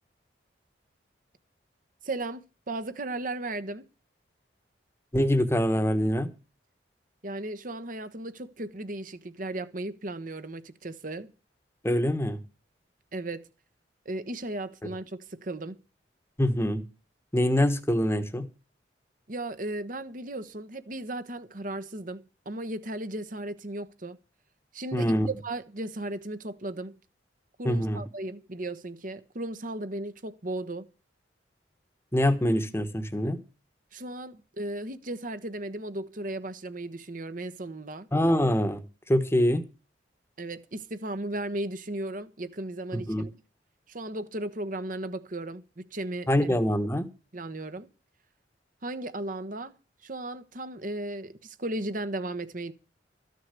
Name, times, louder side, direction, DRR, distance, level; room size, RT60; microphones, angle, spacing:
voice 1, 2.0-3.9 7.2-11.3 13.1-13.5 14.0-15.8 19.3-24.2 24.7-25.1 25.4-27.0 27.6-30.9 33.9-38.1 40.4-43.3 43.9-46.5 47.3-47.9 48.8-49.8 50.0-52.7, right 1 dB, 45° right, 1.1 m, -36 dB
voice 2, 5.1-6.3 11.8-12.4 16.4-16.8 17.3-18.5 24.9-25.3 27.6-28.0 32.1-33.4 38.1-39.6 42.9-43.2 46.3-47.1, equal, 15° left, 1.2 m, -24 dB
14.0 x 6.6 x 8.3 m
head